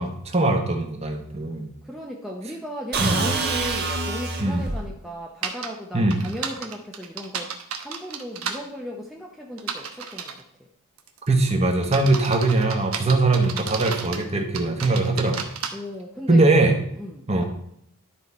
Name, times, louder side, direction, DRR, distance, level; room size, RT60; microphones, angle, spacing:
voice 1, 0.0-1.7 3.0-3.2 4.4-4.7 5.9-6.2 11.3-15.4 16.3-16.7 17.3-17.4, right 2 dB, 30° right, 3 dB, 1.2 m, -21 dB
voice 2, 1.8-10.3 15.7-16.4 16.9-17.4, equal, ahead, -3 dB, 0.8 m, -36 dB
sound 1, 2.9-4.9, right 3 dB, 50° right, 1.4 m, -26 dB
sound 2, 5.4-5.7 6.1-8.6 9.6-10.4 11.0-11.3 11.8-14.2 14.5-15.7, right 7 dB, 85° right, 1.0 m, -32 dB
11.5 x 4.8 x 4.2 m, 0.72 s
head